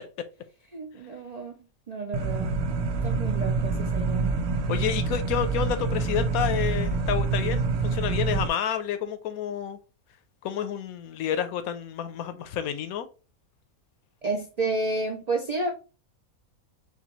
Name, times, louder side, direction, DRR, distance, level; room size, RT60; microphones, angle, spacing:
voice 1, 0.7-1.5 1.9-2.5 3.0-4.4 14.2-15.7, right 3 dB, 60° right, 0.4 m, -30 dB
sound 1, 2.1-8.5, right 4 dB, 85° right, 1.1 m, -26 dB
voice 2, 4.7-9.8 10.4-13.1, left 9 dB, 80° left, 1.1 m, -29 dB
5.7 x 2.3 x 3.0 m
omnidirectional pair, 1.5 m